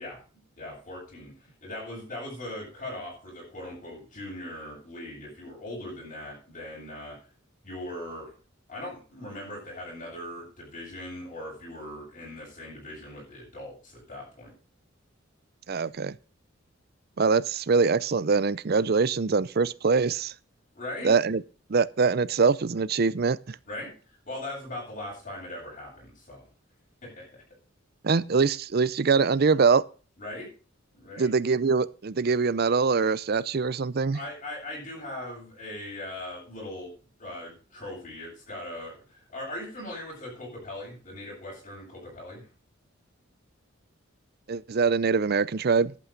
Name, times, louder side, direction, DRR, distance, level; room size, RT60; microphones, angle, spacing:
voice 1, 0.0-7.1 7.6-8.3 8.7-14.5 20.7-21.1 23.7-23.9 24.3-26.4 27.0-27.2 30.2-30.5 30.9-31.3 34.1-36.9 37.2-42.5, left 1 dB, 40° left, 7.6 m, -40 dB
voice 2, 15.7-16.1 17.2-20.3 21.0-21.4 21.7-23.6 28.0-29.8 31.2-34.2 44.5-45.9, right 5 dB, 50° right, 0.5 m, -23 dB
11.5 x 8.4 x 5.1 m
head